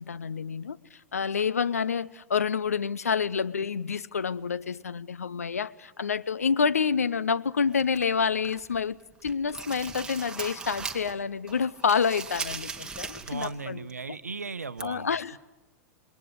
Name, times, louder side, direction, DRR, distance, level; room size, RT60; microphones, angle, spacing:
voice 1, 0.0-9.0 9.2-13.8 14.8-15.4, left 6 dB, 75° left, 0.8 m, -28 dB
sound 1, 7.7-8.8 9.1-11.2 11.5-13.6 13.9-14.0 14.8-14.9, right 4 dB, 10° right, 2.2 m, -38 dB
voice 2, 13.2-15.1, right 4 dB, 80° right, 0.9 m, -37 dB
28.0 x 21.5 x 8.1 m
figure-of-eight pair, 95°, 8 cm